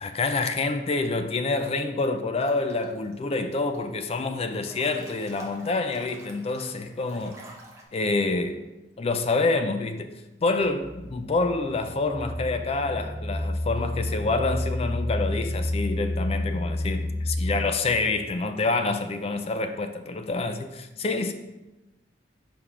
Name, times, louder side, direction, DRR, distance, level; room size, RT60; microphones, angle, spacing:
voice 1, 0.0-7.3 7.9-8.7 9.0-10.1 10.4-21.3, left 3 dB, 35° left, 0.4 m, -27 dB
Breathing / Bathtub (filling or washing) / Splash splatter, 2.4-3.1 3.5-4.2 4.5-7.8, equal, 15° right, 0.9 m, -48 dB
sound 1, 10.5-18.2, left 1 dB, 90° left, 1.4 m, -30 dB
4.8 x 3.7 x 5.6 m
head